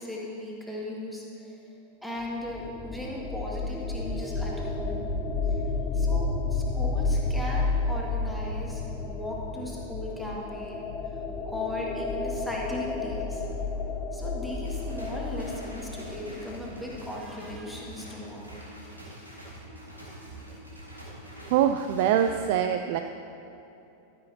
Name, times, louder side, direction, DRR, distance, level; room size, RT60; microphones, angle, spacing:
voice 1, 0.0-1.6 2.0-5.1 5.5-5.6 5.9-10.9 11.4-13.4 14.1-18.6, left 1 dB, ahead, -4 dB, 1.9 m, -37 dB
sound 1, 2.2-17.0, left 3 dB, 15° left, 0.8 m, -31 dB
sound 2, 14.5-22.5, right 1 dB, 90° right, 2.0 m, -45 dB
voice 2, 21.5-23.0, right 10 dB, 50° right, 7 dB, 0.3 m, -24 dB
12.5 x 9.8 x 2.9 m, 2.9 s
figure-of-eight pair, 90°, 0 cm